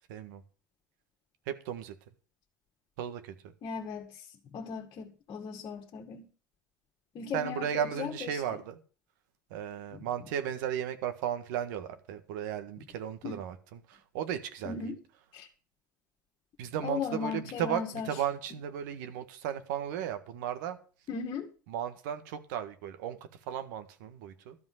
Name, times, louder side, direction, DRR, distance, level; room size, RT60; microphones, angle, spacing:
voice 1, 0.1-0.4 1.5-1.9 3.0-3.3 7.3-8.8 9.5-14.9 16.6-20.8 21.7-23.2 23.5-24.6, right 9 dB, 70° right, 1.6 m, -35 dB
voice 2, 3.6-6.3 7.1-8.4 9.9-10.0 13.2-13.4 14.7-15.0 15.3-15.5 16.8-18.1 21.1-21.5, left 6 dB, 45° left, 2.0 m, -37 dB
13.0 x 5.4 x 8.0 m
hypercardioid pair, 70°, 10 cm